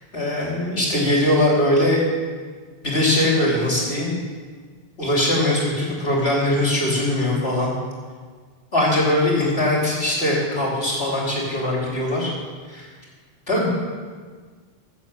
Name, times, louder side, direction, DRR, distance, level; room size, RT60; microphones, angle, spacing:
voice 1, 0.1-2.1 2.8-4.1 5.0-7.7 8.7-12.3 12.7-12.9 13.5-13.7, left 1 dB, 90° left, -3 dB, 3.6 m, -21 dB
14.5 x 7.8 x 7.9 m, 1.5 s
omnidirectional pair, 1.0 m